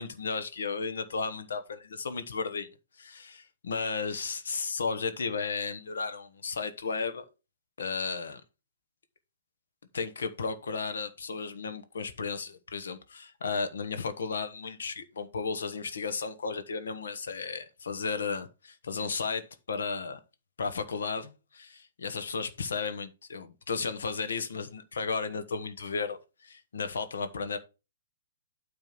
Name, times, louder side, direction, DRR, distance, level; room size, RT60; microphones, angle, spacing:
voice 1, 0.0-1.6 2.0-2.7 3.0-7.2 7.8-8.4 9.9-20.2 20.6-27.6, left 4 dB, 80° left, 1.3 m, -34 dB
9.2 x 3.4 x 6.0 m
hypercardioid pair, 140°, 0 cm